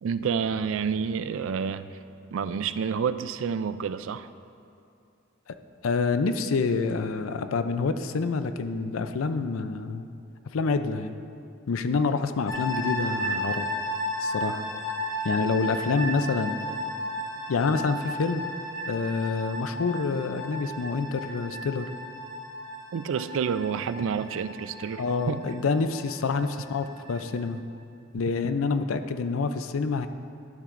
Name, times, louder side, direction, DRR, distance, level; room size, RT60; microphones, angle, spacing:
voice 1, 0.0-2.0 2.3-4.3 22.9-25.4, right 6 dB, 70° right, 12 dB, 0.3 m, -29 dB
voice 2, 5.8-10.1 10.5-11.2 11.7-13.7 14.2-14.6 15.2-16.6 17.5-18.5 18.9-21.9 25.0-27.6 28.1-30.1, left 4 dB, 85° left, 10 dB, 0.5 m, -27 dB
sound 1, 12.5-27.4, equal, 70° left, 2.4 m, -34 dB
12.0 x 9.9 x 2.5 m, 2.5 s
head